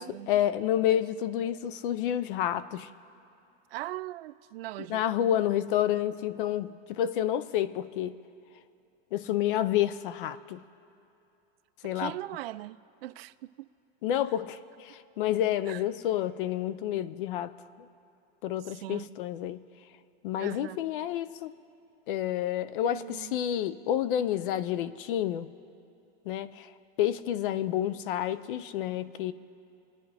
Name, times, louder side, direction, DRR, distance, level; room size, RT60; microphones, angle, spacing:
voice 1, 0.3-2.9 4.9-8.2 9.1-10.6 11.8-12.1 14.0-17.9 18.4-19.6 20.2-21.5 22.1-25.5 26.2-26.7 27.0-29.3, left 11 dB, 55° left, 16 dB, 0.6 m, -29 dB
voice 2, 3.7-5.0 11.8-13.7 15.7-15.8 18.6-19.2 20.4-20.8 22.8-23.4, right 16 dB, 70° right, 15 dB, 0.5 m, -40 dB
27.5 x 9.9 x 3.4 m, 2.8 s
supercardioid pair, 165°, 31 cm